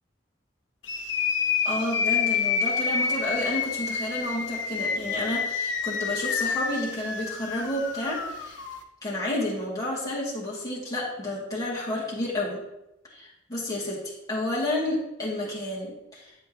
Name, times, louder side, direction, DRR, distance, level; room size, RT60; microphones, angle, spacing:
sound 1, 0.8-8.8, left 6 dB, 75° left, 0.9 m, -28 dB
voice 1, 1.6-8.6 9.0-12.6 13.1-16.3, left 1 dB, 20° left, -7 dB, 2.6 m, -31 dB
8.7 x 7.9 x 3.1 m, 0.92 s
head